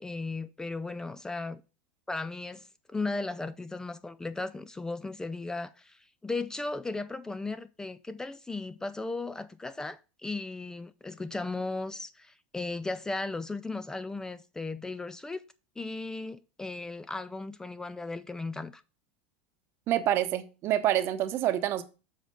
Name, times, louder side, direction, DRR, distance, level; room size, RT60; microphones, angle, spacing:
voice 1, 0.0-1.6 2.1-15.4 15.8-18.8, left 3 dB, 10° left, 0.4 m, -36 dB
voice 2, 19.9-21.8, right 12 dB, 45° right, 0.9 m, -27 dB
7.3 x 4.4 x 5.4 m
hypercardioid pair, 100°, 6 cm